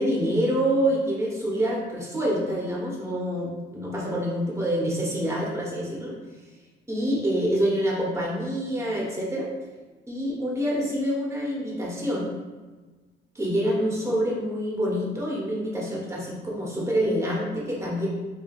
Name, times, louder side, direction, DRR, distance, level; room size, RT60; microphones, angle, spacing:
voice 1, 0.0-6.1 6.9-9.5 10.1-12.3 13.3-18.1, equal, 15° right, -5 dB, 1.1 m, -26 dB
5.3 x 2.6 x 2.4 m, 1.3 s
cardioid pair, 90°, 20 cm